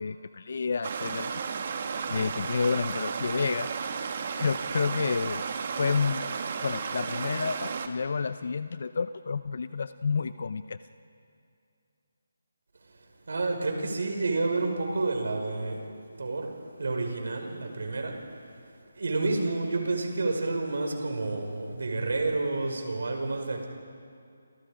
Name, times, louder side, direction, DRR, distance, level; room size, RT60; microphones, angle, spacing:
voice 1, 0.0-1.3 2.1-3.7 4.3-5.4 5.8-6.3 6.6-10.8, left 5 dB, 50° left, 13 dB, 0.6 m, -30 dB
Stream, 0.8-7.9, right 5 dB, 35° right, 1.4 m, -33 dB
voice 2, 13.3-15.9 16.2-18.2 19.0-23.7, right 3 dB, 65° right, 3 dB, 5.2 m, -29 dB
28.5 x 28.5 x 5.0 m, 2.5 s
hypercardioid pair, 175°, 0 cm